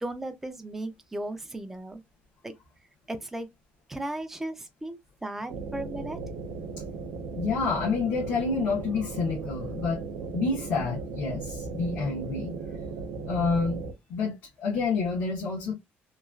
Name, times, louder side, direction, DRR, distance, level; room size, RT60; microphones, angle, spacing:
voice 1, 0.0-2.0 2.4-2.6 3.1-3.5 3.9-6.2, right 1 dB, 10° right, 0.4 m, -36 dB
sound 1, 5.5-13.9, right 4 dB, 90° right, 0.5 m, -37 dB
voice 2, 7.3-10.0 10.3-12.5 13.2-13.8 14.1-15.7, left 4 dB, 75° left, 1.1 m, -28 dB
3.0 x 2.3 x 2.4 m
cardioid pair, 165°, 4 cm